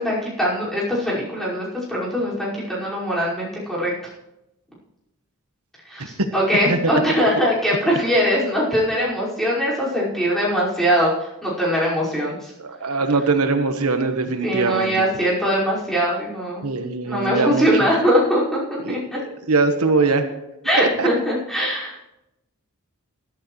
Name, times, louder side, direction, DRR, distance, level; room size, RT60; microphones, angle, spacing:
voice 1, 0.0-3.9 5.9-12.5 14.4-16.6 17.0-19.2 20.6-22.0, equal, ahead, -8 dB, 5.4 m, -21 dB
voice 2, 12.6-14.9 16.6-17.7 18.8-18.9 19.5-20.3 20.8-21.1, right 3 dB, 90° right, 6 dB, 1.3 m, -21 dB
21.5 x 11.5 x 3.2 m, 0.89 s
head